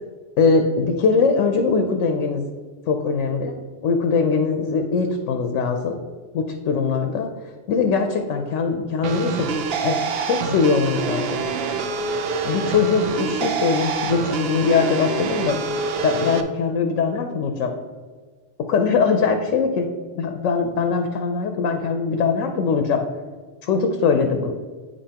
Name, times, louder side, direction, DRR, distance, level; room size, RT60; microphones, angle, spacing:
voice 1, 0.4-2.5 2.9-3.5 3.8-6.0 6.3-9.5 9.8-11.3 12.4-15.7 16.0-17.7 18.7-19.9 20.2-23.1 23.6-24.5, left 5 dB, 85° left, 5 dB, 1.0 m, -21 dB
sound 1, 9.0-16.4, right 4 dB, 60° right, 0.7 m, -26 dB
8.6 x 5.3 x 2.9 m, 1.5 s
omnidirectional pair, 1.3 m